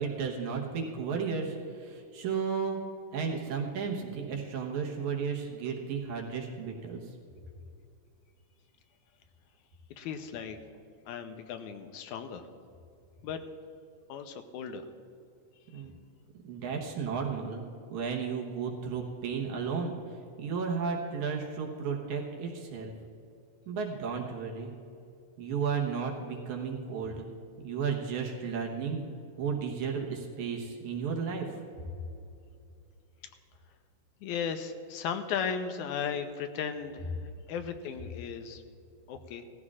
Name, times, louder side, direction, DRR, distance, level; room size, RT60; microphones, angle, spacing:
voice 1, 0.0-2.8 3.1-7.0 15.7-15.9 16.4-17.6 17.9-19.9 20.4-22.9 23.7-24.7 25.4-27.3 27.6-29.0 29.4-31.5, right 6 dB, 70° right, 0 dB, 2.5 m, -33 dB
voice 2, 10.0-10.6 11.1-12.4 13.2-13.4 14.1-14.8 15.7-15.8 34.2-38.6 39.1-39.4, left 7 dB, 85° left, 7 dB, 2.1 m, -36 dB
18.0 x 14.0 x 2.5 m, 2.5 s
omnidirectional pair, 3.5 m